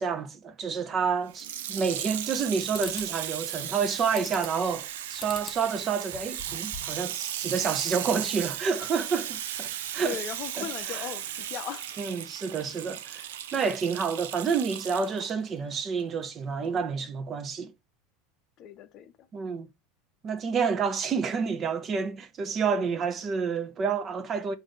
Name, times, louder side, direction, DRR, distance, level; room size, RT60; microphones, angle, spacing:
voice 1, 0.0-10.2 10.6-11.1 12.0-17.7 19.3-19.7 20.2-24.5, right 5 dB, 35° right, 0.7 m, -29 dB
Water tap faucet / Sink (filling or washing), 1.3-15.3 16.0-16.1, right 11 dB, 80° right, 0.5 m, -36 dB
sound 1, 1.8-2.4 2.7-3.1 4.2-4.7 5.2-5.6 6.0-7.0, left 3 dB, 15° left, 1.0 m, -43 dB
voice 2, 10.0-12.0 18.6-19.1, left 9 dB, 50° left, 0.5 m, -38 dB
4.9 x 2.7 x 3.8 m
hypercardioid pair, 100°, 0 cm